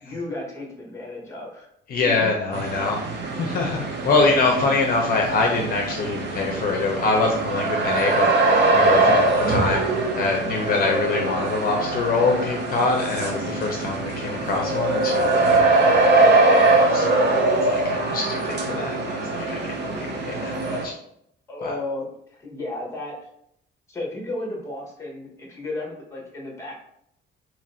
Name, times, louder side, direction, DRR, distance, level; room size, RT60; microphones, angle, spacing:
voice 1, 0.0-1.7 2.0-2.3 3.6-3.7 9.0-9.3 21.5-23.1 23.9-26.8, left 2 dB, 15° left, -1 dB, 0.9 m, -33 dB
voice 2, 1.9-3.0 3.4-8.3 8.7-20.9 21.6-21.7, left 3 dB, 50° left, 1 dB, 0.5 m, -25 dB
sound 1, 2.5-20.9, right 2 dB, 65° right, 0.7 m, -22 dB
2.9 x 2.5 x 4.2 m, 0.73 s
cardioid pair, 165°, 20 cm